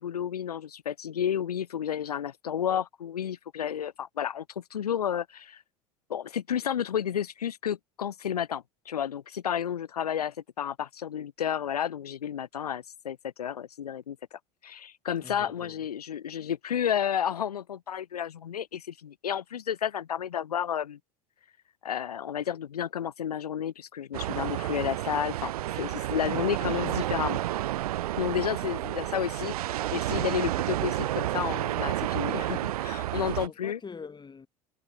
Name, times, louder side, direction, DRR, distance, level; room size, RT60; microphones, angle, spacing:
voice 1, 0.0-5.6 6.1-14.2 14.6-21.0 21.8-27.4 28.2-33.8, left 9 dB, 85° left, 3.5 m, -31 dB
voice 2, 15.2-15.8 33.1-34.5, left 5 dB, 25° left, 2.9 m, -44 dB
sound 1, 24.1-33.5, right 14 dB, 80° right, 1.2 m, -30 dB
hypercardioid pair, 80°, 19 cm